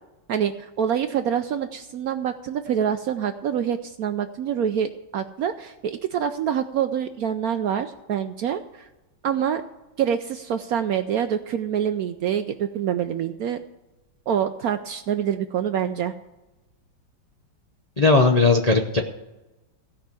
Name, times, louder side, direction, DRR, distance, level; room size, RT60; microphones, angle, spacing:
voice 1, 0.3-8.9 9.2-9.6 10.0-13.6 14.3-16.1, right 8 dB, 70° right, 8 dB, 0.9 m, -26 dB
voice 2, 18.0-19.0, left 3 dB, 45° left, 2 dB, 0.5 m, -17 dB
16.0 x 5.6 x 8.2 m, 1.0 s
omnidirectional pair, 2.0 m